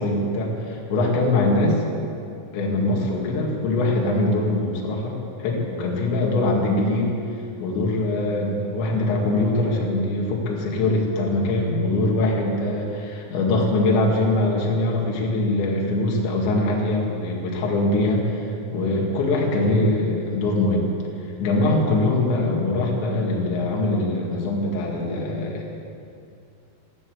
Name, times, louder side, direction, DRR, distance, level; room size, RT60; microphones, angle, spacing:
voice 1, 0.0-1.8 2.5-7.1 7.6-20.9 21.4-25.7, left 2 dB, 65° left, -2 dB, 4.3 m, -22 dB
13.5 x 13.5 x 7.9 m, 2.6 s
omnidirectional pair, 5.7 m